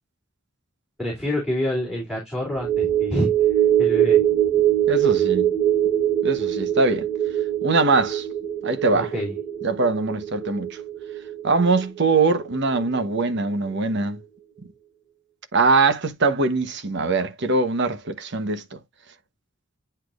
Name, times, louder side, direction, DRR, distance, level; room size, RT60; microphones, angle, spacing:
voice 1, 1.0-3.3 3.8-4.2 8.9-9.3, left 1 dB, 5° right, 3.0 m, -27 dB
sound 1, 2.6-13.2 13.5-13.7, right 11 dB, 20° right, 1.4 m, -23 dB
voice 2, 4.9-5.5 6.2-7.1 7.6-8.3 8.6-9.1 9.6-10.8 11.4-14.2 15.5-18.8, right 3 dB, 60° right, 1.0 m, -22 dB
10.0 x 4.3 x 2.5 m
head